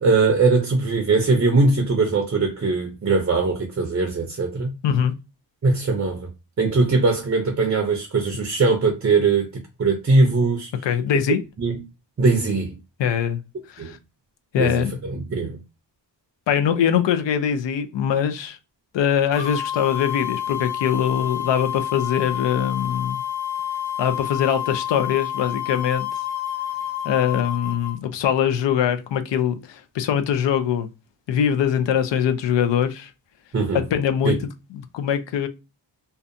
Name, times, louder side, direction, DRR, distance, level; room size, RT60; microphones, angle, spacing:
voice 1, 0.0-4.7 5.6-6.3 6.6-9.5 9.8-10.7 11.6-11.7 12.2-12.7 13.8-13.9 14.6-15.6 33.5-33.8 34.2-34.4, right 3 dB, 35° right, 0.5 m, -20 dB
voice 2, 10.8-11.4 13.0-13.4 13.7-14.0 14.5-15.0 16.5-18.6 18.9-23.2 24.0-26.1 27.0-30.9 31.3-33.1 33.7-34.4 34.7-35.5, left 9 dB, 80° left, 0.5 m, -22 dB
sound 1, 19.3-28.0, left 10 dB, 55° left, 1.5 m, -29 dB
2.6 x 2.2 x 2.5 m
wide cardioid pair, 150°, 43 cm